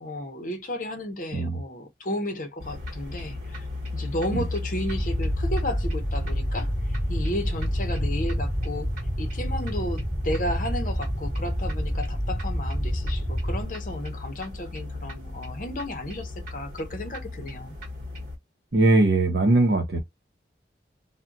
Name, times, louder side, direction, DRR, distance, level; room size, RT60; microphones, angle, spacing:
voice 1, 0.0-3.7 3.9-8.9 9.2-17.7, left 1 dB, 45° left, 0.7 m, -33 dB
sound 1, 2.6-18.4, left 2 dB, 45° right, 1.2 m, -36 dB
sound 2, 4.9-13.6, equal, 5° right, 1.1 m, -28 dB
voice 2, 18.7-20.0, right 2 dB, 65° right, 0.7 m, -20 dB
2.3 x 2.2 x 3.8 m
head